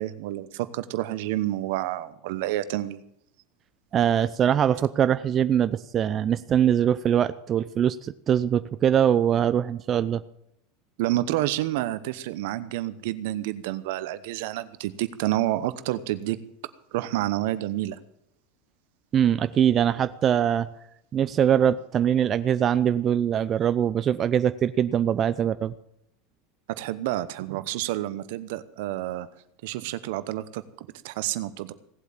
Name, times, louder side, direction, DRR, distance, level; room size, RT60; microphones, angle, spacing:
voice 1, 0.0-3.0 11.0-16.4 16.9-18.0 26.7-29.3 29.6-31.7, right 15 dB, 70° right, 14 dB, 0.9 m, -29 dB
voice 2, 3.9-10.2 19.1-20.7 21.1-25.7, right 9 dB, 35° right, 13 dB, 0.6 m, -22 dB
17.5 x 8.2 x 7.3 m, 0.79 s
hypercardioid pair, 90°, 0 cm